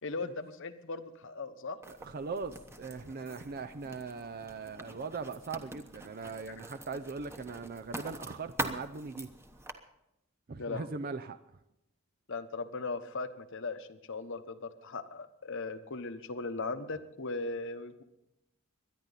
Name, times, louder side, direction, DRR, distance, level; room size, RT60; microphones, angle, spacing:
voice 1, 0.0-1.8 10.5-11.0 12.3-18.0, left 3 dB, 65° left, 10 dB, 1.1 m, -38 dB
Writing, 1.8-9.7, right 1 dB, 10° right, 1.0 m, -44 dB
voice 2, 1.9-9.3 10.5-11.4, right 4 dB, 45° right, 10 dB, 0.5 m, -40 dB
23.0 x 10.5 x 4.1 m, 0.86 s
head